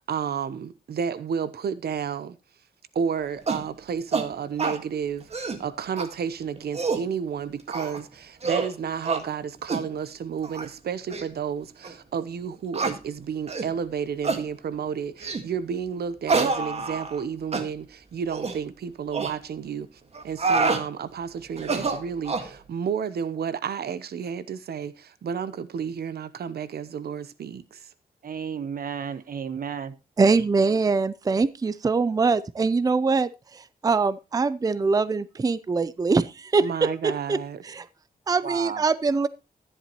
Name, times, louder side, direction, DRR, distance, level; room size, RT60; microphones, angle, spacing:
voice 1, 0.1-2.4 2.9-27.9 36.6-37.6, right 7 dB, 85° right, 0.8 m, -31 dB
sound 1, 3.5-3.7 4.1-4.3 4.6-4.8 5.2-5.6 6.0-6.1 6.6-7.1 7.7-8.0 8.4-8.7 9.0-9.2 9.7-9.9 10.4-10.7 11.1-11.2 11.8-11.9 12.7-13.0 13.5-13.7 14.2-14.4 15.2-15.5 16.3-17.2 17.5-17.7 18.3-18.6 19.1-19.3 20.1-20.8 21.6-22.5, right 4 dB, 40° right, 1.7 m, -27 dB
voice 2, 28.2-30.0 38.4-38.8, right 7 dB, 65° right, 1.2 m, -33 dB
voice 3, 30.2-37.4 37.7-37.9 38.3-39.3, right 4 dB, 25° right, 0.5 m, -23 dB
13.0 x 11.5 x 3.0 m
wide cardioid pair, 155°, 16 cm